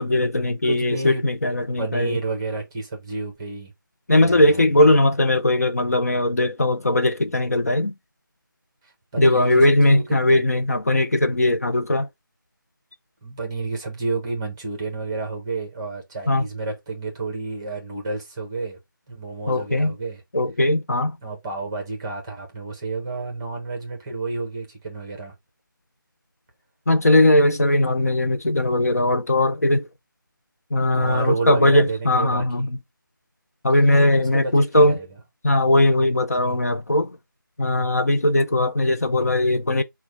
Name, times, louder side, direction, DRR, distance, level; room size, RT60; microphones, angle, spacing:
voice 1, 0.0-2.2 4.1-7.9 9.2-12.1 16.3-16.4 19.5-19.9 20.3-21.2 26.9-29.9 30.7-32.8 33.6-35.0 35.4-37.2 37.6-39.8, left 1 dB, 45° left, 0.6 m, -19 dB
voice 2, 0.6-1.2 1.8-3.7 4.2-4.9 9.1-10.4 13.2-18.8 19.1-20.2 21.2-25.3 30.9-32.7 34.2-35.1, right 3 dB, 15° right, 0.9 m, -30 dB
5.9 x 2.3 x 3.4 m
figure-of-eight pair, 165°, 11 cm